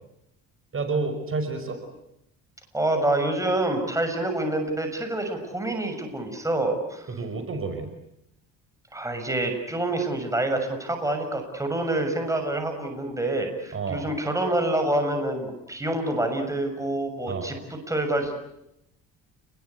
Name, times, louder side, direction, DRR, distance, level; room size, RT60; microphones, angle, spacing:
voice 1, 0.7-1.8 7.1-7.9 13.7-14.1 17.3-17.5, right 4 dB, 40° right, 7 dB, 5.9 m, -29 dB
voice 2, 2.7-7.1 8.9-18.3, right 1 dB, 10° right, 5 dB, 6.8 m, -27 dB
30.0 x 21.5 x 8.3 m, 0.82 s
supercardioid pair, 90°, 34 cm